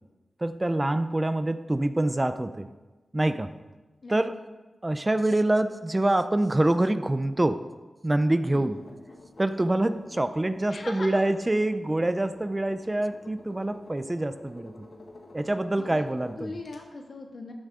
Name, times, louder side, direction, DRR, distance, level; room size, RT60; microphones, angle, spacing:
voice 1, 0.4-2.7 3.1-3.5 4.1-4.4 4.8-7.7 8.0-8.8 9.4-14.7 15.3-16.5, right 1 dB, 20° right, 10 dB, 0.4 m, -25 dB
sound 1, 8.7-16.8, left 2 dB, 80° left, 1.6 m, -49 dB
voice 2, 10.7-11.4 15.8-15.9 16.4-17.5, left 3 dB, 60° left, 2 dB, 1.8 m, -39 dB
13.0 x 11.0 x 3.7 m, 1.2 s
wide cardioid pair, 110°, 0 cm